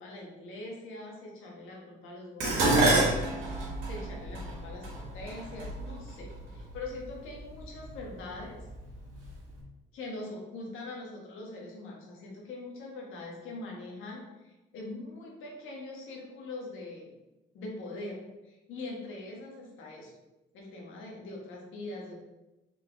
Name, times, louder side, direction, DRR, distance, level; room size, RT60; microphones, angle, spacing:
voice 1, 0.0-8.6 9.9-17.1 17.5-20.1 20.5-22.1, left 2 dB, 90° left, -1 dB, 1.3 m, -43 dB
Dishes pots and pans, 2.4-6.8 7.7-8.1 8.4-9.3 9.5-9.6, right 2 dB, 90° right, 1.4 m, -28 dB
4.4 x 3.4 x 3.4 m, 1.0 s
cardioid pair, 90°, 20 cm